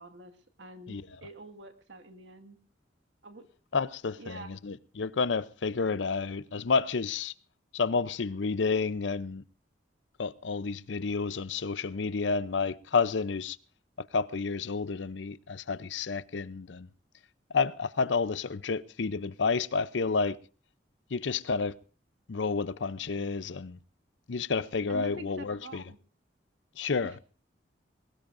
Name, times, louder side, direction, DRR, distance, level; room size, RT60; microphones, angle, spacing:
voice 1, 0.0-2.6 3.2-3.5 4.2-4.6 24.9-26.0 27.0-27.2, right 1 dB, 85° right, 1.9 m, -46 dB
voice 2, 3.7-7.3 7.7-9.4 10.2-13.6 14.1-16.9 17.5-20.4 21.1-21.8 22.3-23.8 24.3-25.8 26.8-27.1, left 4 dB, 80° left, 0.6 m, -30 dB
21.0 x 18.5 x 2.6 m
head